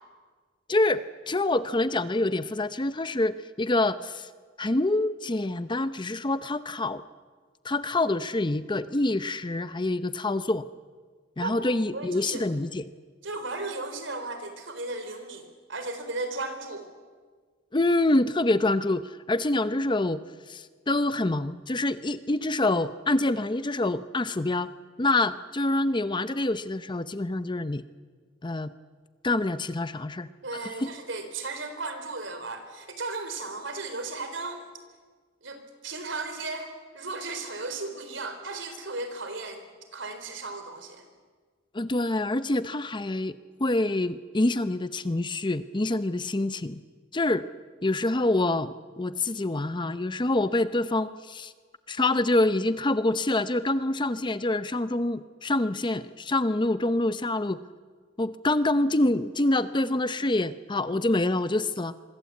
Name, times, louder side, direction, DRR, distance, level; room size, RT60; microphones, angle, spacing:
voice 1, 0.7-1.0 1.3-4.3 4.6-7.0 7.6-10.7 11.4-12.9 17.7-20.2 20.5-24.7 25.0-27.8 28.4-28.7 29.2-30.3 30.6-30.9 41.7-46.8 47.1-47.5 47.8-51.5 51.9-57.6 58.2-61.9, left 2 dB, 25° left, 13 dB, 0.7 m, -26 dB
voice 2, 11.9-12.4 13.2-16.9 30.4-34.6 35.4-39.7 39.9-41.1, right 3 dB, 65° right, 8 dB, 4.0 m, -35 dB
26.0 x 23.5 x 8.5 m, 1.5 s
head